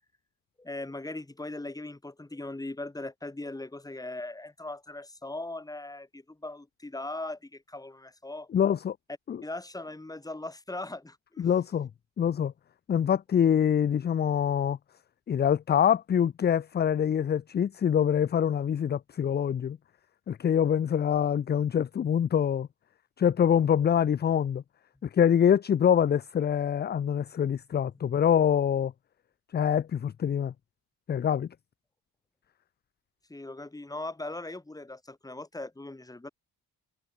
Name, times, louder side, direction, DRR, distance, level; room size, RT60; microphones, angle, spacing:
voice 1, 0.6-8.5 9.4-11.5 33.3-36.3, left 2 dB, 10° left, 3.7 m, -39 dB
voice 2, 8.5-9.0 9.3-9.4 11.4-11.9 12.2-12.5 12.9-14.8 15.3-19.8 20.3-22.7 23.2-24.6 25.0-28.9 29.5-30.5 31.1-31.5, left 8 dB, 25° left, 0.4 m, -25 dB
cardioid pair, 175°, 39 cm